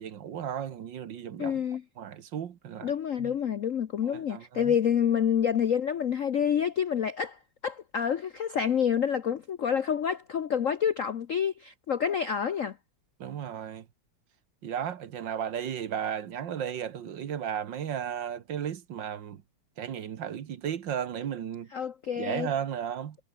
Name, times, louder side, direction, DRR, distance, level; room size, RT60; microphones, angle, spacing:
voice 1, 0.0-1.6 2.0-2.9 3.2-3.3 4.0-4.8 13.2-13.9 14.6-19.4 19.8-21.7 22.2-23.2, right 9 dB, 60° right, 1.8 m, -34 dB
voice 2, 1.4-1.8 2.8-12.8 21.7-22.5, left 8 dB, 60° left, 0.8 m, -28 dB
omnidirectional pair, 2.4 m